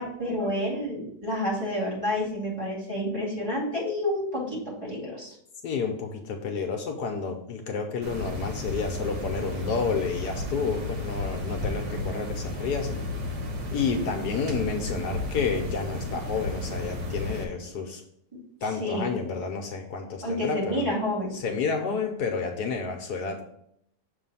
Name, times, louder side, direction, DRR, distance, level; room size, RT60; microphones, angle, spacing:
voice 1, 0.0-5.3 18.8-19.1 20.2-21.3, left 1 dB, 20° right, -6 dB, 2.3 m, -29 dB
voice 2, 5.6-13.1 13.7-18.0 18.6-20.9 21.3-23.4, left 5 dB, 70° left, 3 dB, 1.3 m, -30 dB
sound 1, 8.0-17.4, left 1 dB, 75° right, 1.7 m, -33 dB
6.9 x 3.2 x 5.4 m, 0.72 s
omnidirectional pair, 1.8 m